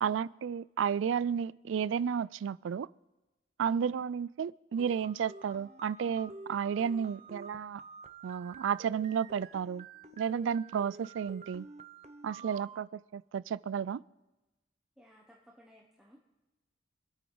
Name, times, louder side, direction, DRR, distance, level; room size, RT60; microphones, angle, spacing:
voice 1, 0.0-2.9 3.6-7.8 8.2-9.9 10.2-11.7 12.2-14.0, right 7 dB, 85° right, 0.3 m, -32 dB
sound 1, 4.8-12.8, right 4 dB, 35° right, 0.7 m, -49 dB
voice 2, 12.4-12.7 15.0-16.2, equal, 5° right, 1.0 m, -57 dB
25.0 x 8.6 x 3.9 m
head